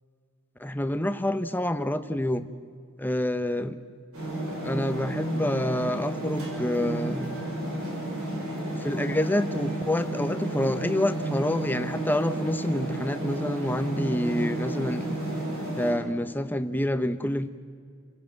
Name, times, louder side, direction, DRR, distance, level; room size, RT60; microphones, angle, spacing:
voice 1, 0.6-2.5 3.0-3.8 4.6-7.4 8.8-15.1 15.8-17.5, left 1 dB, 10° left, 10 dB, 0.8 m, -27 dB
sound 1, 4.1-15.9, right 1 dB, 75° right, 6.1 m, -32 dB
28.5 x 16.0 x 7.6 m, 2.2 s
head